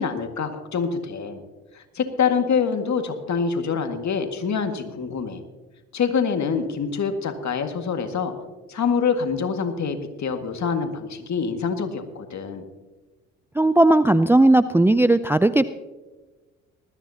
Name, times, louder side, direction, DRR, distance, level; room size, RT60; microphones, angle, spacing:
voice 1, 0.0-1.4 1.7-5.4 5.9-8.3 8.7-12.6, left 6 dB, 50° left, 6 dB, 1.9 m, -25 dB
voice 2, 13.6-15.7, right 2 dB, 5° right, 14 dB, 0.4 m, -17 dB
20.0 x 13.5 x 2.8 m, 1.2 s
hypercardioid pair, 50°, 36 cm